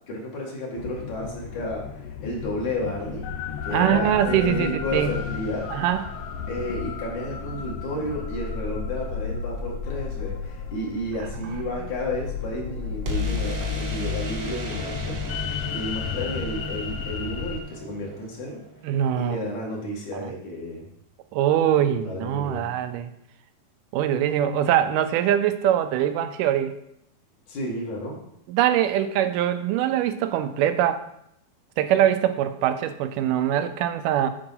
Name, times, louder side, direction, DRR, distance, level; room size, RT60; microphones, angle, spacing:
voice 1, 0.1-3.3 3.6-5.7 6.5-15.2 15.7-18.6 19.2-20.9 22.0-22.7 27.5-28.2, left 1 dB, 65° left, -3 dB, 3.2 m, -32 dB
sound 1, 0.8-17.6, left 6 dB, 90° left, 1.4 m, -33 dB
voice 2, 3.7-5.2 5.7-6.0 18.8-19.4 20.1-20.3 21.3-23.1 23.9-26.8 28.5-31.0 31.8-34.3, right 10 dB, 85° right, 10 dB, 2.2 m, -23 dB
sound 2, 4.9-6.9 13.0-18.8, left 3 dB, 65° right, 1.1 m, -34 dB
8.8 x 4.8 x 5.8 m, 0.76 s
omnidirectional pair, 3.7 m